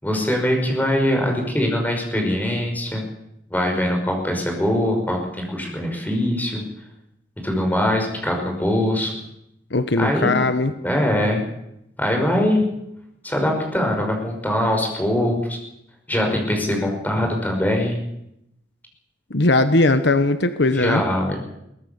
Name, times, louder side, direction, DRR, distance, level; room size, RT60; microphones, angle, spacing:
voice 1, 0.0-3.0 3.5-6.6 7.4-9.1 10.0-10.4 10.8-11.4 12.0-12.6 13.2-15.6 16.1-18.0 20.7-21.4, left 1 dB, 10° left, 2 dB, 5.5 m, -22 dB
voice 2, 9.7-10.7 19.3-21.0, left 2 dB, 65° left, 10 dB, 1.1 m, -19 dB
23.0 x 18.5 x 7.0 m, 0.84 s
head